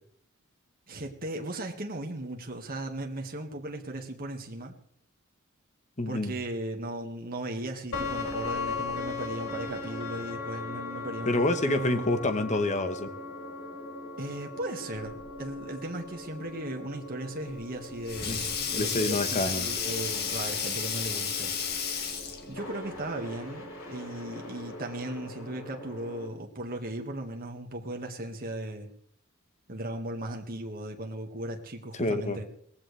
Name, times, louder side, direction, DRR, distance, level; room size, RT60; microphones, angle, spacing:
voice 1, 0.9-4.8 6.1-12.1 14.2-21.5 22.5-28.9 29.7-32.4, right 1 dB, 45° right, 2 dB, 1.9 m, -37 dB
voice 2, 6.0-6.3 11.3-13.1 18.2-18.4 18.8-19.7 32.0-32.4, left 2 dB, 35° left, 9 dB, 1.2 m, -27 dB
sound 1, 7.9-26.3, left 3 dB, 80° left, 4.6 m, -39 dB
Sink (filling or washing), 17.4-22.6, left 6 dB, 50° left, 2.1 m, -32 dB
19.5 x 15.0 x 3.4 m, 0.67 s
head